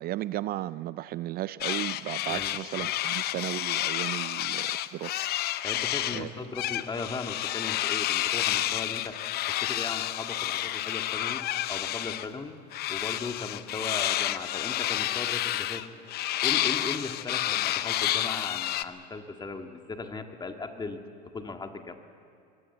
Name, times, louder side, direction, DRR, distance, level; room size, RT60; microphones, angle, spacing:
voice 1, 0.0-5.2 6.1-6.3, right 15 dB, 45° right, 17 dB, 0.4 m, -35 dB
sound 1, 1.6-6.2 6.5-12.3 12.7-18.8, left 14 dB, 50° left, 0.8 m, -30 dB
voice 2, 5.6-12.6 12.9-15.8 16.4-22.0, left 4 dB, 20° left, 5 dB, 1.8 m, -38 dB
22.0 x 17.5 x 7.9 m, 2.5 s
supercardioid pair, 100°, 21 cm